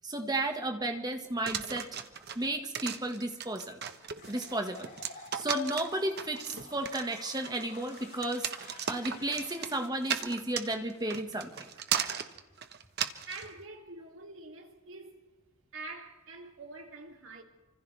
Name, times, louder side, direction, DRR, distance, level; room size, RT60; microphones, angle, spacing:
voice 1, 0.0-1.9 2.4-3.8 4.3-4.9 5.3-11.7, right 1 dB, 20° right, 1.8 m, -33 dB
sound 1, 1.5-13.5, right 8 dB, 50° right, 1.3 m, -36 dB
sound 2, 4.1-10.0, left 4 dB, 55° left, 5.7 m, -52 dB
voice 2, 13.3-15.2 15.7-17.4, right 3 dB, 65° right, 3.2 m, -45 dB
29.0 x 26.0 x 3.5 m
head